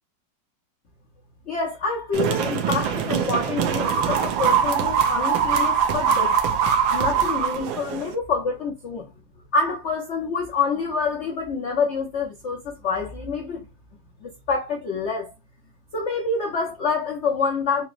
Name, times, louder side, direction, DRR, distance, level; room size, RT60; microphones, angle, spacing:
voice 1, 1.5-6.3 6.9-9.1 9.5-13.6 14.2-15.3 15.9-17.8, left 4 dB, 70° left, 0.6 m, -27 dB
sound 1, 2.1-8.1, right 7 dB, 80° right, 1.4 m, -22 dB
4.1 x 2.9 x 2.4 m
omnidirectional pair, 2.1 m